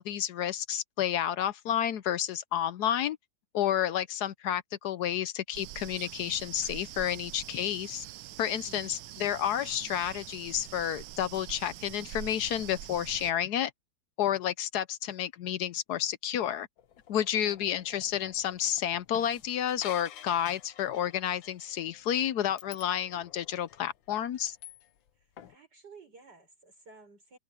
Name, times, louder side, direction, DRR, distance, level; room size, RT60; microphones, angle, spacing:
voice 1, 0.0-3.2 3.5-8.0 8.4-13.7 14.2-16.7 17.1-24.6, left 10 dB, 65° left, 1.1 m, -30 dB
sound 1, 5.5-13.3, right 15 dB, 75° right, 1.2 m, -45 dB
voice 2, 8.6-9.2 17.4-17.8 25.1-27.4, right 4 dB, 60° right, 6.6 m, -55 dB
sound 2, 16.8-25.1 25.4-25.6, left 10 dB, 90° left, 1.8 m, -51 dB
omnidirectional pair, 2.0 m